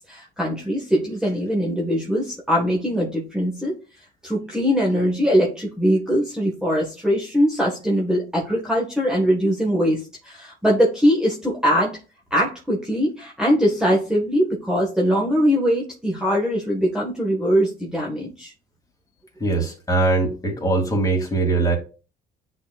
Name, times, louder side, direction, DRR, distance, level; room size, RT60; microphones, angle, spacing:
voice 1, 0.1-3.7 4.2-12.0 12.3-18.5, equal, 5° right, -3 dB, 1.5 m, -21 dB
voice 2, 19.4-21.8, right 3 dB, 20° left, -1 dB, 2.6 m, -21 dB
9.9 x 4.2 x 2.4 m, 0.34 s
cardioid pair, 105°, 19 cm